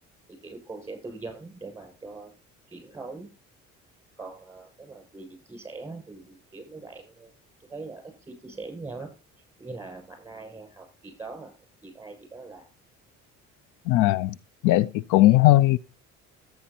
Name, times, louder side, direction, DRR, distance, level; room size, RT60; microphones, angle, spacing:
voice 1, 0.3-2.3 2.7-3.3 4.2-7.3 7.7-9.1 9.6-11.5 11.8-12.7, right 3 dB, 10° right, 7.5 m, -41 dB
voice 2, 13.9-14.4 14.6-15.8, left 16 dB, 75° left, 0.5 m, -18 dB
14.0 x 9.5 x 2.8 m
supercardioid pair, 85°, 31 cm